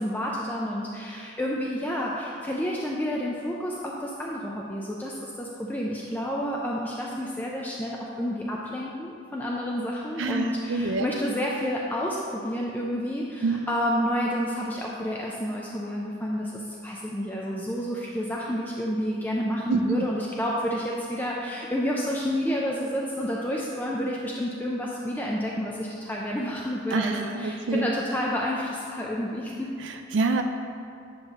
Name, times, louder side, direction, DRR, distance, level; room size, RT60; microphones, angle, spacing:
voice 1, 0.0-29.7, equal, 10° left, -3 dB, 0.4 m, -30 dB
voice 2, 10.2-11.1 13.4-13.7 19.7-20.0 26.9-27.9 29.8-30.4, right 3 dB, 85° right, 5 dB, 0.4 m, -26 dB
9.4 x 3.2 x 6.4 m, 2.5 s
head